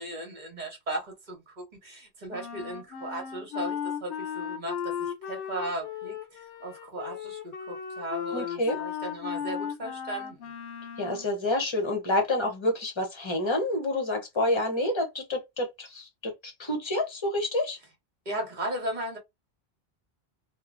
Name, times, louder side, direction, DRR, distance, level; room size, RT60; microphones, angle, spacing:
voice 1, 0.0-6.1 6.6-10.5 18.2-19.2, right 1 dB, 45° right, 1.2 m, -36 dB
Wind instrument woodwind instrument, 2.3-11.3, left 8 dB, 85° left, 0.9 m, -36 dB
voice 2, 8.3-8.8 11.0-17.8, left 1 dB, 30° left, 0.9 m, -28 dB
3.0 x 2.3 x 2.5 m
omnidirectional pair, 1.1 m